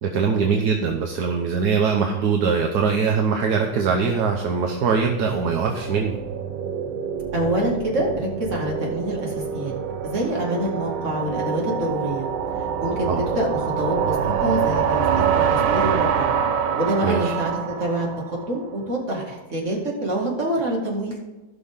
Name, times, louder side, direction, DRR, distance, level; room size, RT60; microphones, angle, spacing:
voice 1, 0.0-6.2 13.1-13.2 17.0-17.3, right 5 dB, 60° right, 3 dB, 1.3 m, -22 dB
sound 1, 3.5-18.7, right 7 dB, 75° right, 1.6 m, -26 dB
voice 2, 7.3-9.7 10.0-12.3 12.6-15.1 15.5-16.3 16.8-21.2, right 1 dB, 35° right, -2 dB, 2.5 m, -26 dB
16.5 x 6.0 x 3.7 m, 1.1 s
omnidirectional pair, 2.2 m